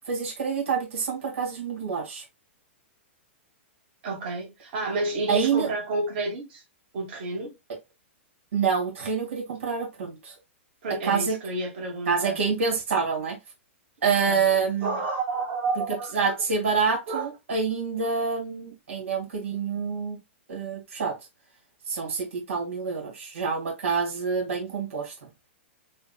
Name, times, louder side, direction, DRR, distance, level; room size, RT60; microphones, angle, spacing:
voice 1, 0.1-2.2 5.3-5.7 8.5-10.3 11.0-11.4 12.1-13.4 14.0-15.0 16.1-20.2 20.5-21.2 21.9-25.3, right 5 dB, 90° right, 2.1 m, -27 dB
voice 2, 4.0-6.6 6.9-7.5 10.8-12.4 14.3-14.4 14.8-16.3 17.1-17.2, right 3 dB, 60° right, 2.0 m, -30 dB
6.5 x 2.5 x 2.2 m
hypercardioid pair, 140°, 7 cm